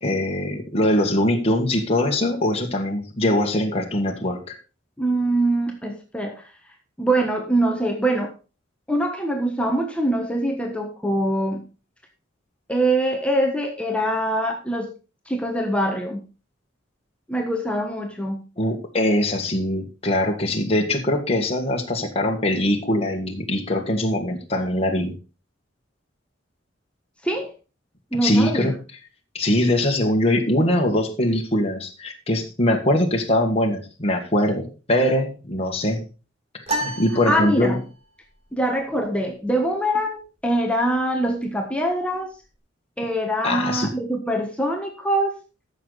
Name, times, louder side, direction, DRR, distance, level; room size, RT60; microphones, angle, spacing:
voice 1, 0.0-4.6 18.6-25.2 28.2-28.7 29.3-36.0 36.8-37.8 43.4-43.9, left 1 dB, 35° left, 1 dB, 1.7 m, -22 dB
voice 2, 5.0-6.5 7.0-8.3 8.9-11.6 12.7-14.9 15.3-16.2 17.3-18.4 27.2-27.5 28.1-28.7 37.3-37.8 38.5-42.3 43.0-45.3, right 1 dB, 5° left, 2 dB, 1.3 m, -23 dB
sound 1, 36.7-38.1, right 1 dB, 35° right, 3.3 m, -30 dB
14.0 x 6.6 x 4.0 m, 0.32 s
head